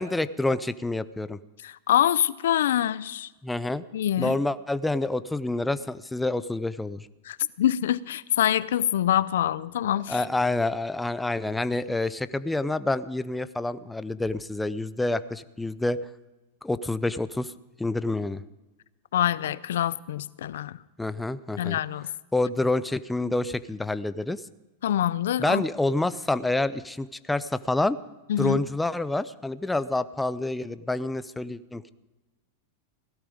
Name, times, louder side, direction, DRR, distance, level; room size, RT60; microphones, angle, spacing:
voice 1, 0.0-1.4 3.4-3.8 4.2-7.1 10.1-16.0 16.6-17.5 17.8-18.4 21.0-21.8 22.3-24.4 25.4-28.0 28.4-31.8, left 2 dB, 5° left, 14 dB, 0.5 m, -27 dB
voice 2, 1.6-3.3 3.9-4.4 7.2-10.2 19.1-20.8 21.6-22.1 24.8-25.6 28.3-28.6, left 11 dB, 85° left, 18 dB, 0.6 m, -25 dB
17.0 x 12.5 x 5.1 m, 1.1 s
supercardioid pair, 140°, 0 cm